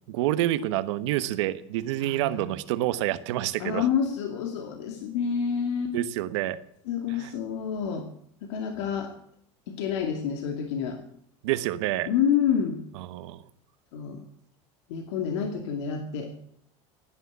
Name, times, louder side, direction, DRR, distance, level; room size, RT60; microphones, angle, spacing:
voice 1, 0.1-3.9 5.9-6.6 7.1-7.3 11.4-12.1 13.0-13.4, right 14 dB, 85° right, 13 dB, 1.2 m, -28 dB
voice 2, 2.0-2.5 3.6-5.9 6.9-8.1 8.4-9.1 9.7-11.0 12.1-12.8 13.9-14.2 14.9-16.3, left 7 dB, 85° left, 5 dB, 2.4 m, -28 dB
16.5 x 10.0 x 8.2 m, 0.68 s
supercardioid pair, 135°, 15 cm